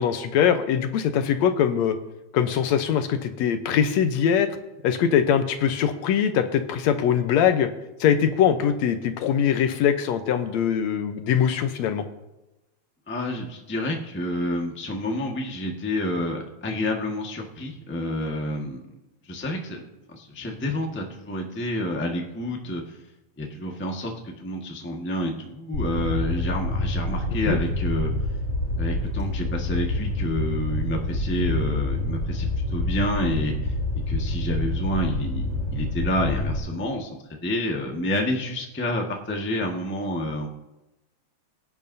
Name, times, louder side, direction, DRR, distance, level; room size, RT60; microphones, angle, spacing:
voice 1, 0.0-2.0 2.3-4.5 4.8-7.7 8.0-12.0 27.5-27.6, left 8 dB, 75° left, 8 dB, 2.0 m, -22 dB
voice 2, 13.1-18.8 19.2-19.8 20.1-23.0 23.4-28.1 28.8-33.5 34.1-37.2 37.4-40.5, left 1 dB, 20° left, 0 dB, 0.3 m, -29 dB
Fire, 25.7-36.6, left 1 dB, 45° left, 4.8 m, -27 dB
22.5 x 10.5 x 2.7 m, 0.97 s
omnidirectional pair, 3.4 m